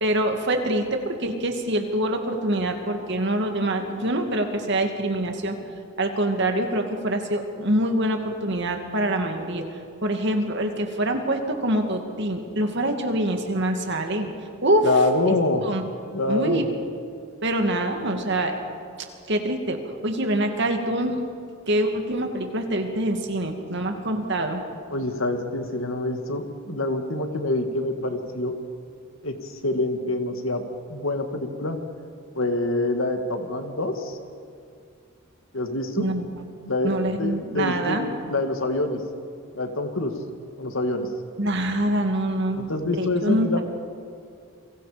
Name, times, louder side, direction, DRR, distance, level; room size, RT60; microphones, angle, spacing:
voice 1, 0.0-5.5 6.0-9.6 10.0-14.3 14.6-14.9 15.3-15.4 15.6-15.8 16.3-16.6 17.4-18.6 19.3-19.8 20.0-21.2 21.7-24.6 36.0-36.5 36.8-38.1 41.4-43.6, right 1 dB, 55° right, 4 dB, 2.4 m, -25 dB
voice 2, 14.8-15.7 16.1-16.7 24.9-28.5 29.2-30.6 30.9-31.8 32.4-34.2 35.5-36.1 36.6-39.0 39.5-40.1 40.6-41.1 42.5-43.6, left 2 dB, 75° left, 6 dB, 2.1 m, -26 dB
29.5 x 23.5 x 5.2 m, 2.3 s
head